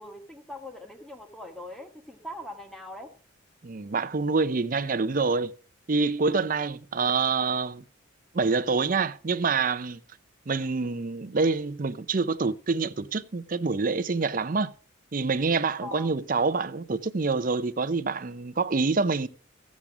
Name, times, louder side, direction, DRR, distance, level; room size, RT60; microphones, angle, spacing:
voice 1, 0.0-3.1 15.8-16.1, left 1 dB, ahead, 1.5 m, -41 dB
voice 2, 3.6-5.5 5.9-7.8 8.3-10.0 10.5-14.7 15.1-19.3, right 4 dB, 40° right, 0.6 m, -26 dB
15.0 x 7.4 x 4.9 m
head